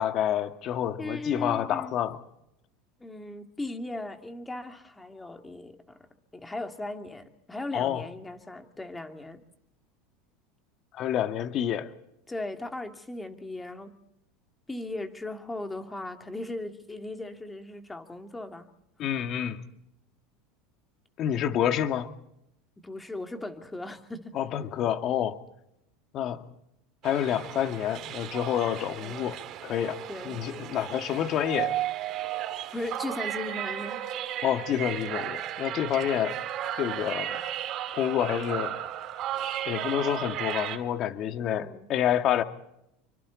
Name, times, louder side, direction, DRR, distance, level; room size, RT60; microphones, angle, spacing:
voice 1, 0.0-2.2 7.7-8.0 10.9-11.9 19.0-19.6 21.2-22.1 24.3-25.4 26.1-26.4 27.0-31.8 34.4-36.4 36.8-37.4 38.0-38.8 39.7-42.4, left 10 dB, 45° left, 8 dB, 2.0 m, -28 dB
voice 2, 1.0-1.9 3.0-6.0 6.3-9.4 12.3-14.0 14.7-18.7 22.8-24.3 29.0-29.3 30.1-30.4 32.7-34.0 41.4-41.9, left 2 dB, 10° left, 6 dB, 2.7 m, -37 dB
sound 1, 27.0-40.8, right 11 dB, 45° right, 2.9 m, -34 dB
28.0 x 24.5 x 4.2 m, 0.79 s
supercardioid pair, 125°, 0 cm